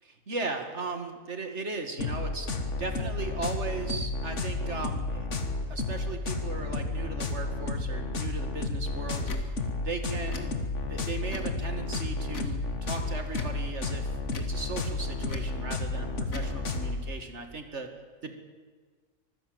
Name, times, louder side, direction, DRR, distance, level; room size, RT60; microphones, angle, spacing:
voice 1, 0.0-5.3 5.7-9.3 9.8-10.5 10.9-17.9 18.2-18.3, right 3 dB, 55° right, 6 dB, 2.2 m, -37 dB
sound 1, 2.0-17.0, left 3 dB, 60° left, 2.0 m, -32 dB
Tick / Tick-tock, 9.2-9.5 10.2-10.5 11.2-11.6 12.3-12.6 13.3-13.6 14.3-14.6 15.3-15.5 16.3-16.5, left 3 dB, 75° left, 2.2 m, -40 dB
24.5 x 15.5 x 7.9 m, 1.5 s
omnidirectional pair, 1.4 m